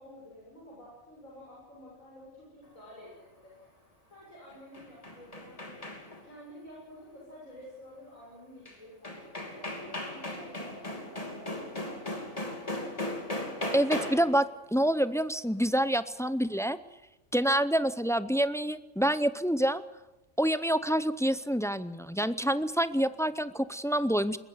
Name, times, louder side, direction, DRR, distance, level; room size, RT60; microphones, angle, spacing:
voice 1, 0.0-3.7 4.1-5.8 6.2-12.9, left 1 dB, 75° left, -5 dB, 7.6 m, -50 dB
sound 1, 4.5-6.3 8.7-8.8 9.0-14.4, left 1 dB, 25° left, 3.0 m, -37 dB
voice 2, 13.7-16.8 17.3-19.8 20.4-24.4, right 1 dB, 5° left, 13 dB, 0.4 m, -27 dB
21.5 x 20.5 x 8.1 m, 0.99 s
omnidirectional pair, 1.4 m